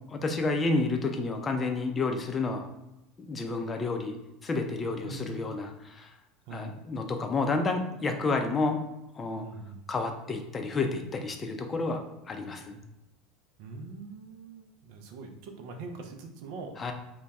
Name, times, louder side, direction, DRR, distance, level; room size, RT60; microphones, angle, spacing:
voice 1, 0.1-2.7 3.3-4.2 4.4-6.1 6.5-8.8 9.1-9.5 9.9-12.0 12.3-12.8 16.8-16.9, left 3 dB, 30° left, 4 dB, 0.5 m, -30 dB
voice 2, 5.0-5.4 6.5-6.7 9.4-9.8 12.7-12.8 13.6-16.8, right 3 dB, 65° right, 4 dB, 0.5 m, -42 dB
2.8 x 2.2 x 3.4 m, 0.91 s
hypercardioid pair, 75°, 0 cm